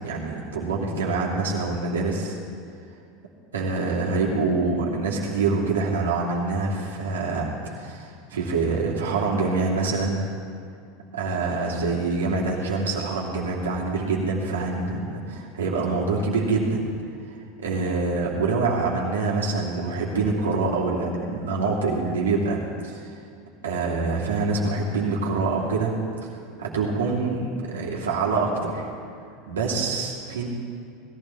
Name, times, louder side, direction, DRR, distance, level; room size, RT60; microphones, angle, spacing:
voice 1, 0.0-2.4 3.5-10.2 11.1-16.8 17.6-23.1 23.6-25.9 26.6-28.9 29.5-30.5, right 3 dB, 80° right, -3 dB, 2.8 m, -25 dB
20.5 x 15.0 x 3.6 m, 2.4 s
hypercardioid pair, 85°, 0 cm